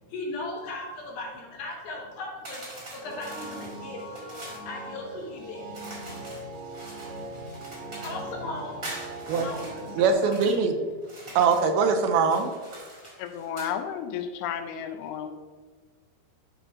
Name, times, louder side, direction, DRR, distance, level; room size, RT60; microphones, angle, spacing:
voice 1, 0.1-6.4 7.7-10.3 11.2-11.4, left 2 dB, 70° left, -3 dB, 3.1 m, -38 dB
sound 1, 2.4-4.7 5.7-8.3 8.8-10.6 11.0-11.7 12.2-13.7, right 1 dB, 35° right, 1.4 m, -43 dB
sound 2, 3.0-10.1, right 1 dB, 55° right, 1.9 m, -40 dB
voice 2, 10.0-10.8 11.4-12.5, right 5 dB, 80° right, 6 dB, 2.4 m, -22 dB
voice 3, 13.2-15.3, left 8 dB, 85° left, 7 dB, 2.6 m, -32 dB
12.0 x 4.5 x 2.6 m, 1.5 s
omnidirectional pair, 4.5 m